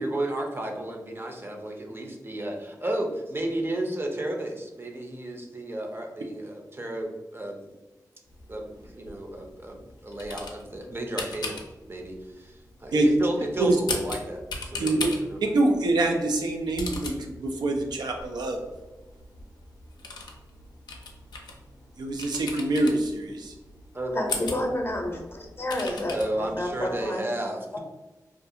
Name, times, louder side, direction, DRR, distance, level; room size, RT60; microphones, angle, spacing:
voice 1, 0.0-7.7 8.5-11.6 11.9-15.5 23.9-24.5 26.1-27.8, right 1 dB, 30° right, 1 dB, 0.6 m, -33 dB
sound 1, 8.3-27.1, left 3 dB, 80° left, 0.4 m, -39 dB
voice 2, 15.5-18.6 22.0-23.5, right 2 dB, 85° right, 2 dB, 0.3 m, -25 dB
voice 3, 24.1-27.2 27.7-27.8, left 1 dB, 35° left, 2 dB, 0.6 m, -30 dB
2.4 x 2.3 x 2.7 m, 1.1 s
cardioid pair, 40°, 7 cm